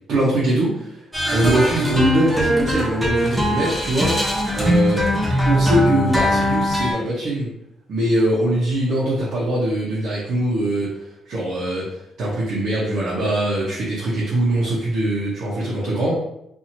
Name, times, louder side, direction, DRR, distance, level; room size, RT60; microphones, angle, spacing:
voice 1, 0.1-0.9 1.3-4.2 4.5-5.1 5.4-7.5 7.9-10.9 11.3-16.1, right 1 dB, 70° right, -8 dB, 1.0 m, -22 dB
sound 1, 1.1-6.9, equal, 10° right, 0.9 m, -20 dB
2.8 x 2.7 x 2.7 m, 0.80 s
cardioid pair, 90°, 0 cm